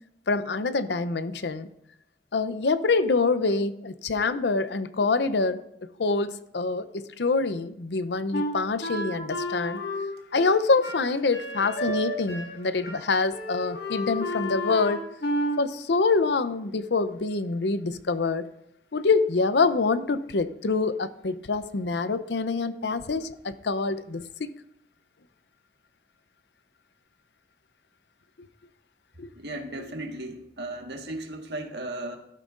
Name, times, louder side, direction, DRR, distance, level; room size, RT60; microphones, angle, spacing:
voice 1, 0.3-1.7 2.3-9.8 10.3-15.1 15.6-18.5 18.9-24.5 29.2-29.3, left 3 dB, 80° left, 12 dB, 0.6 m, -26 dB
Wind instrument woodwind instrument, 8.3-12.6 12.8-13.0 13.3-15.6, equal, 60° left, 2.0 m, -31 dB
voice 2, 29.3-32.2, right 1 dB, 75° right, 3 dB, 1.6 m, -36 dB
16.0 x 12.5 x 2.5 m, 0.80 s
head